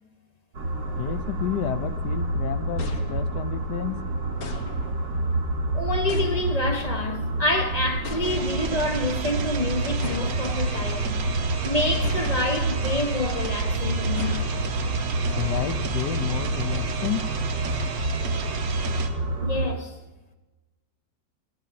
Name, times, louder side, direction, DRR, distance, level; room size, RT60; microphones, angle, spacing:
sound 1, 0.5-19.7, right 2 dB, 75° right, 2.5 m, -28 dB
voice 1, 0.9-4.0 15.3-17.3, left 11 dB, 70° left, 1.2 m, -30 dB
sound 2, 2.8-3.7 4.4-5.2 6.1-6.9 8.0-8.8 10.0-11.0 12.0-12.8 14.2-15.1, left 3 dB, 55° left, 1.6 m, -39 dB
voice 2, 5.7-11.2 11.6-14.5 14.8-15.0 19.4-20.0, left 2 dB, 30° left, 0.7 m, -28 dB
sound 3, 8.2-19.1, right 5 dB, 55° right, 1.5 m, -33 dB
16.0 x 9.5 x 7.6 m
omnidirectional pair, 2.0 m